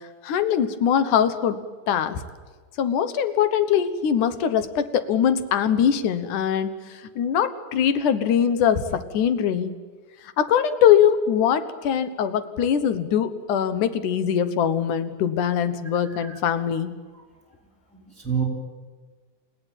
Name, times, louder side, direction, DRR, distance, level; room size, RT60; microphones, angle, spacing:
voice 1, 0.2-1.6 1.9-2.2 2.8-9.7 10.4-16.9, left 8 dB, 80° left, 12 dB, 2.7 m, -22 dB
voice 2, 16.0-16.4 17.1-17.2 18.1-18.4, right 7 dB, ahead, 0 dB, 4.2 m, -29 dB
30.0 x 16.5 x 9.2 m, 1.5 s
omnidirectional pair, 3.6 m